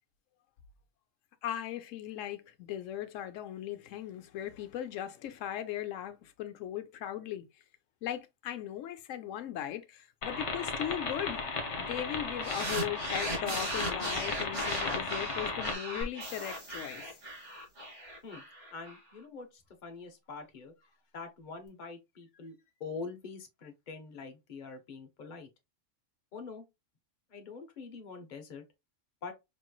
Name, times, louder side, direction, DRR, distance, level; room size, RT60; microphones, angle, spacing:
voice 1, 1.4-7.5 8.0-11.4 11.8-17.0, left 11 dB, 85° left, 1.0 m, -38 dB
sound 1, 10.2-15.7, left 4 dB, 65° left, 1.2 m, -36 dB
sound 2, 12.4-19.0, right 1 dB, 70° right, 2.1 m, -37 dB
sound 3, 16.0-17.8 21.7-21.8, equal, 25° right, 1.2 m, -47 dB
voice 2, 18.7-22.5 22.8-25.5 26.3-26.6 27.3-28.6 29.2-29.3, left 4 dB, 45° left, 0.9 m, -44 dB
5.2 x 3.0 x 2.3 m
omnidirectional pair, 1.3 m